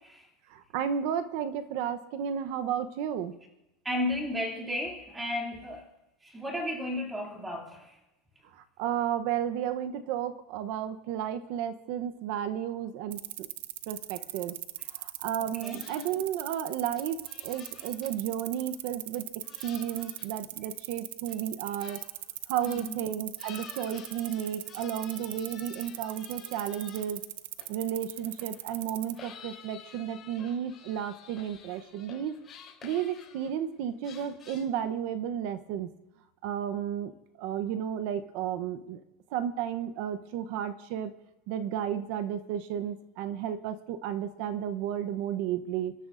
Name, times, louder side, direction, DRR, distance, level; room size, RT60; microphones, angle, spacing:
voice 1, 0.5-3.4 8.4-13.5 13.9-14.6 14.9-22.0 22.5-27.2 27.7-32.4 32.8-35.9 36.4-39.0 39.3-41.1 41.5-45.9, right 9 dB, 50° right, 10 dB, 0.8 m, -33 dB
voice 2, 3.8-5.9 6.2-8.0 15.6-15.8 22.6-23.0, left 1 dB, 5° right, 0 dB, 2.5 m, -34 dB
sound 1, 13.1-29.2, right 15 dB, 75° right, 0.5 m, -39 dB
sound 2, 15.6-16.1 16.4-16.7 17.0-18.1 18.6-18.7 19.1-20.3 20.7-20.9 21.3-21.4 21.8-22.1 22.6-22.9 23.4-27.2 27.6-33.7 34.0-34.6, left 7 dB, 15° left, 3.4 m, -51 dB
29.0 x 12.5 x 2.6 m, 0.95 s
supercardioid pair, 175°, 0 cm